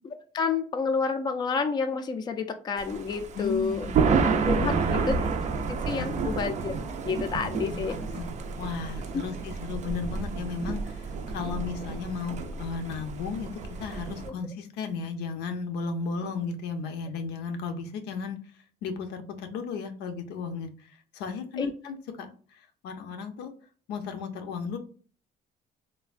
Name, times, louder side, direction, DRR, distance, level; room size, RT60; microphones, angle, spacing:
voice 1, 0.3-3.9 4.4-5.2 5.7-6.7 7.0-8.0 9.1-9.2 14.2-14.3 21.6-21.7, left 5 dB, 25° left, 7 dB, 0.3 m, -29 dB
Thunder, 2.8-14.3, right 5 dB, 45° right, 0.4 m, -30 dB
voice 2, 3.3-4.2 4.6-5.3 5.9-6.1 7.7-8.3 8.6-13.5 13.8-18.4 18.8-23.5 23.9-24.8, left 5 dB, 85° left, 7 dB, 0.5 m, -35 dB
3.2 x 2.1 x 2.4 m, 0.42 s
cardioid pair, 110°, 17 cm